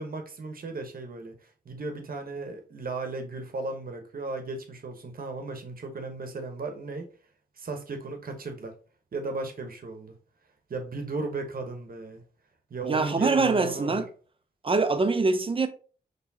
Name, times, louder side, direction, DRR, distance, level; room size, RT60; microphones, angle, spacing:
voice 1, 0.0-1.3 1.6-7.1 7.6-8.7 9.1-10.1 10.7-12.2 12.7-14.0, right 3 dB, 60° right, 1.0 m, -35 dB
voice 2, 12.8-14.0 14.6-15.7, right 3 dB, 35° right, 0.6 m, -24 dB
4.4 x 3.2 x 2.7 m
wide cardioid pair, 85°, 17 cm